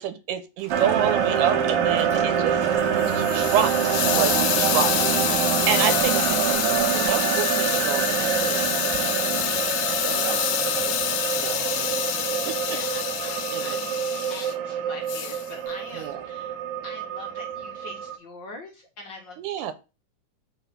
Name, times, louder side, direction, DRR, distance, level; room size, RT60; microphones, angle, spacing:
voice 1, 0.0-2.7 3.0-4.9 5.2-9.5 9.9-10.9 11.4-12.1 12.5-12.6 13.5-13.8 15.9-16.2 19.4-19.7, right 9 dB, 90° right, 2.3 m, -29 dB
sound 1, 0.6-8.1, right 4 dB, 50° right, 1.8 m, -45 dB
sound 2, 0.7-18.1, right 8 dB, 70° right, 1.5 m, -26 dB
Hiss, 2.8-14.5 15.1-15.5, left 13 dB, 90° left, 2.1 m, -27 dB
voice 2, 10.1-10.9 12.7-13.9 14.3-16.5 16.8-19.7, left 2 dB, 65° left, 1.1 m, -43 dB
4.8 x 4.2 x 5.5 m
omnidirectional pair, 3.6 m